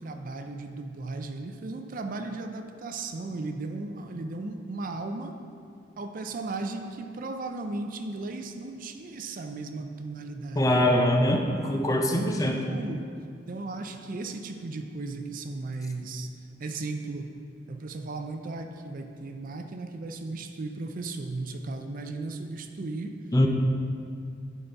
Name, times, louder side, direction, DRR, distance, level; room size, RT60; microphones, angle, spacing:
voice 1, 0.0-5.4 6.0-10.9 11.8-13.1 13.5-16.3 16.6-17.4 17.7-23.2, right 3 dB, 50° right, 6 dB, 0.5 m, -36 dB
voice 2, 10.6-12.6 23.3-23.5, left 1 dB, 20° left, 2 dB, 0.6 m, -23 dB
10.0 x 4.0 x 4.5 m, 2.4 s
head